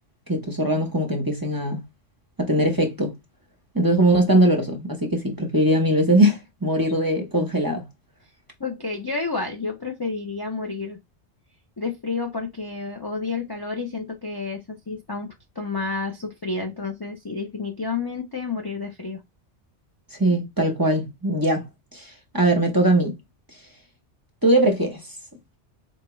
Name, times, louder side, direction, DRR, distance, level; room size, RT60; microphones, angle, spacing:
voice 1, 0.3-1.8 2.4-3.2 3.7-7.9 20.2-23.2 24.4-25.0, right 1 dB, 20° right, 0.7 m, -21 dB
voice 2, 8.6-11.0 11.8-19.2, left 4 dB, 30° left, 0.4 m, -30 dB
4.2 x 2.3 x 3.0 m
omnidirectional pair, 1.2 m